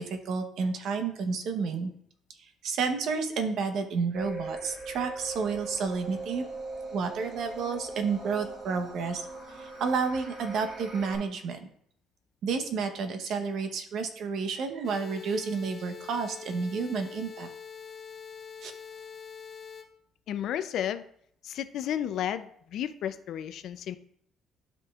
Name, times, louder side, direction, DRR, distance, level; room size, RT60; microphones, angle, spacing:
voice 1, 0.0-1.9 2.6-6.5 6.9-9.3 9.6-11.7 12.4-17.5 18.6-18.7, right 5 dB, 60° right, 7 dB, 0.9 m, -30 dB
sound 1, 4.1-11.1, right 3 dB, 40° right, 2.5 m, -40 dB
sound 2, 14.8-19.8, left 6 dB, 35° left, 0.7 m, -44 dB
voice 2, 20.3-21.0 21.4-24.0, left 10 dB, 60° left, 12 dB, 0.4 m, -32 dB
12.0 x 5.2 x 2.4 m, 0.66 s
cardioid pair, 165°, 0 cm